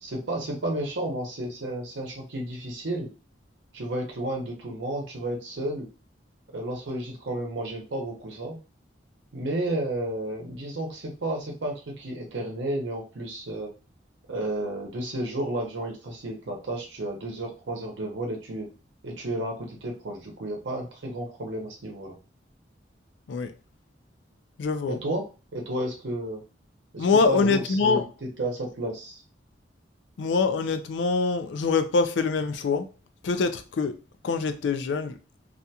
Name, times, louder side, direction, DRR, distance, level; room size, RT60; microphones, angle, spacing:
voice 1, 0.0-3.1 3.7-5.9 6.5-8.6 9.3-13.7 14.3-18.7 19.0-22.1 24.9-26.4 26.9-29.2, right 1 dB, 85° right, 0.7 m, -32 dB
voice 2, 24.6-25.0 27.0-28.0 30.2-32.9 33.2-33.9 34.2-35.1, left 4 dB, 75° left, 0.4 m, -24 dB
2.4 x 2.2 x 2.7 m
head